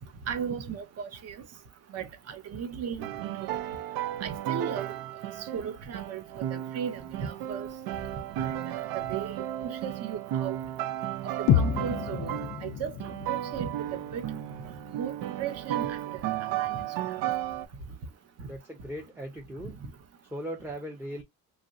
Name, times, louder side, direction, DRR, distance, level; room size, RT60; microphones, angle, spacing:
voice 1, 0.3-1.4 1.9-3.6 4.2-5.0 5.4-7.7 8.4-10.6 11.4-12.4 12.6-14.3 14.9-15.1 15.4-16.9 19.6-19.7, right 7 dB, 45° right, 0.8 m, -36 dB
sound 1, 3.0-12.7 13.0-17.7, right 12 dB, 85° right, 0.6 m, -34 dB
sound 2, 11.5-15.5, left 8 dB, 55° left, 0.4 m, -30 dB
voice 2, 18.4-19.8 20.3-21.2, equal, 5° right, 0.6 m, -38 dB
3.1 x 2.5 x 2.5 m
cardioid pair, 145°, 36 cm